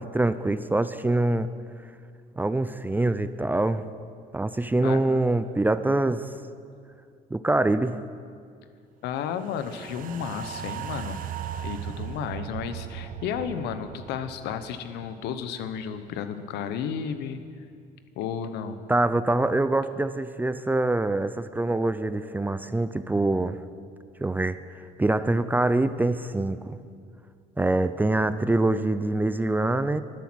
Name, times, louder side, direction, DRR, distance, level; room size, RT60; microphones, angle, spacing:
voice 1, 0.0-1.5 2.4-3.8 4.3-6.3 7.3-8.0 18.9-23.6 24.2-24.6 25.0-26.8 27.6-30.0, right 2 dB, 10° right, 13 dB, 0.4 m, -24 dB
voice 2, 9.0-11.2 11.6-17.4 18.2-18.8, left 7 dB, 85° left, 10 dB, 0.9 m, -33 dB
sound 1, 9.4-15.8 16.1-16.2, right 9 dB, 55° right, 0.8 m, -38 dB
13.0 x 12.0 x 6.2 m, 2.3 s
cardioid pair, 110°, 17 cm